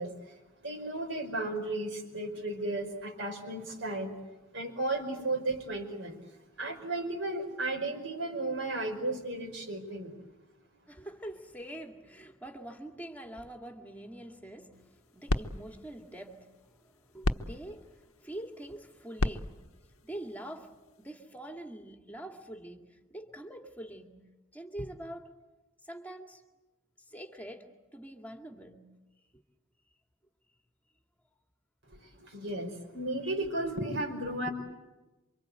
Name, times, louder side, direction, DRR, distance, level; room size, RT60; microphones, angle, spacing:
voice 1, 0.0-4.2 4.5-6.2 6.6-10.1 31.9-34.5, right 2 dB, 60° right, 5.1 m, -34 dB
voice 2, 10.9-25.3 25.8-26.4 27.1-28.9, right 1 dB, 10° left, 2.2 m, -45 dB
sound 1, 14.7-21.1, left 2 dB, 85° left, 1.1 m, -37 dB
28.0 x 25.0 x 8.0 m
head